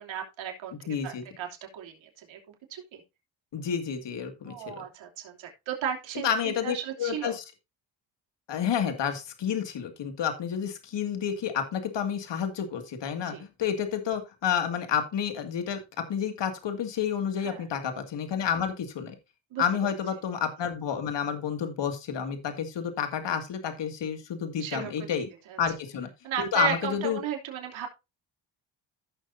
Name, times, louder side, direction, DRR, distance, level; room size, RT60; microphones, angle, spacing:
voice 1, 0.0-1.5 1.7-3.0 4.5-7.4 13.3-13.4 17.4-17.6 19.5-19.9 24.6-25.2 25.5-25.6 26.2-27.9, right 9 dB, 85° right, 1 dB, 3.0 m, -35 dB
voice 2, 0.9-1.2 3.5-4.8 6.2-7.4 8.5-15.8 16.1-19.2 19.6-25.3 25.6-26.1 26.4-27.2, left 8 dB, 65° left, 7 dB, 2.3 m, -30 dB
16.0 x 6.4 x 2.7 m, 0.25 s
cardioid pair, 85°, 46 cm